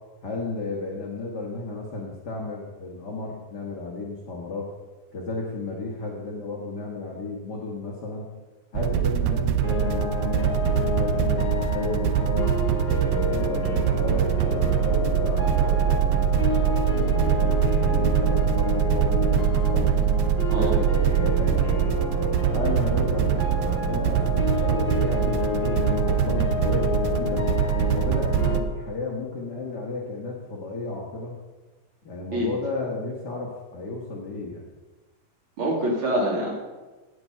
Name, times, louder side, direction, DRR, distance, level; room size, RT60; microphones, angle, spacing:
voice 1, 0.2-4.7 5.1-8.3 8.7-12.6 13.1-15.7 16.9-20.0 20.4-22.0 22.5-27.5 27.9-31.3 32.0-34.6, left 3 dB, 55° left, -1 dB, 1.2 m, -33 dB
sound 1, 8.8-28.6, right 10 dB, 80° right, 1.7 m, -23 dB
sound 2, 9.6-28.6, left 4 dB, 25° left, 2.7 m, -30 dB
voice 2, 35.6-36.5, equal, 40° right, -2 dB, 3.2 m, -25 dB
17.5 x 6.1 x 5.6 m, 1.2 s
omnidirectional pair, 4.0 m